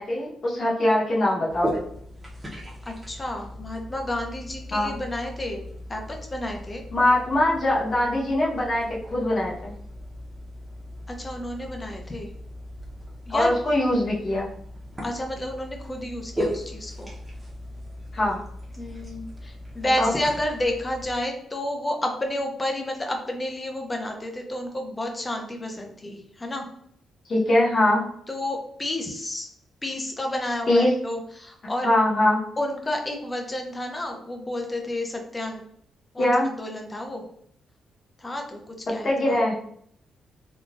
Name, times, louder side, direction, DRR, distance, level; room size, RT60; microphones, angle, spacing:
voice 1, 0.0-1.7 4.7-4.9 6.9-9.7 13.3-14.5 18.1-18.4 20.0-20.1 27.3-28.0 30.7-30.9 31.8-32.4 36.2-36.5 39.0-39.5, left 1 dB, 40° left, -4 dB, 1.0 m, -22 dB
sound 1, 1.5-21.2, equal, 15° right, 0.8 m, -38 dB
voice 2, 2.9-6.8 11.1-12.3 13.3-13.5 15.0-17.1 18.8-26.7 28.3-29.5 29.8-31.9 32.6-35.6 36.1-37.2 38.2-39.4, left 1 dB, 20° left, 2 dB, 0.6 m, -31 dB
3.8 x 2.3 x 2.4 m, 0.66 s
cardioid pair, 135°, 0 cm